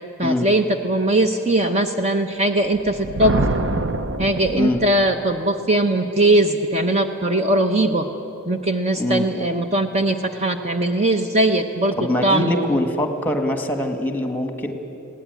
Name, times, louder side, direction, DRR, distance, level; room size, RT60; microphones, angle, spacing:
voice 1, 0.2-3.5 4.2-8.1 8.5-12.8, right 1 dB, 30° right, 6 dB, 0.8 m, -20 dB
Thunder, 2.7-5.1, right 2 dB, 60° right, 0.9 m, -25 dB
voice 2, 12.0-14.7, left 1 dB, 10° left, 6 dB, 1.6 m, -23 dB
21.0 x 17.0 x 9.4 m, 2.8 s
head